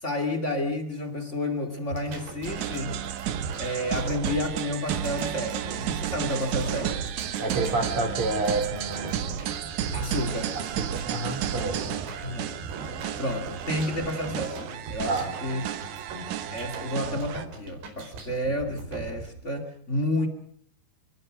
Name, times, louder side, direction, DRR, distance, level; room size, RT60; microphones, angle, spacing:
voice 1, 0.0-3.0 3.6-7.1 9.9-10.6 12.2-12.5 13.1-15.6 16.5-20.3, left 1 dB, 30° left, 5 dB, 1.4 m, -30 dB
sound 1, 1.9-19.3, right 3 dB, 90° right, 6.8 m, -40 dB
sound 2, 2.4-17.4, right 10 dB, 70° right, 1.8 m, -33 dB
voice 2, 7.4-9.4 10.6-12.1 15.0-15.3, right 2 dB, 35° right, 6 dB, 3.5 m, -29 dB
29.5 x 20.5 x 6.3 m, 0.62 s
omnidirectional pair, 4.9 m